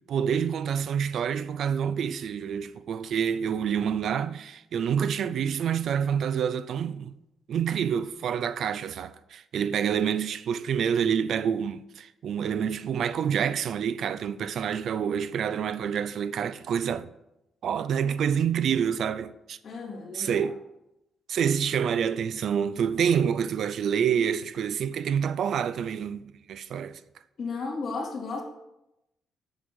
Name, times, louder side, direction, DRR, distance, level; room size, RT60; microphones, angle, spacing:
voice 1, 0.1-7.2 7.5-17.1 17.6-19.6 20.1-20.6 21.3-27.0, right 8 dB, 65° right, 0.4 m, -27 dB
voice 2, 19.6-20.5 27.4-28.4, left 4 dB, 60° left, 2.3 m, -34 dB
7.1 x 5.4 x 6.8 m
cardioid pair, 90°, 0 cm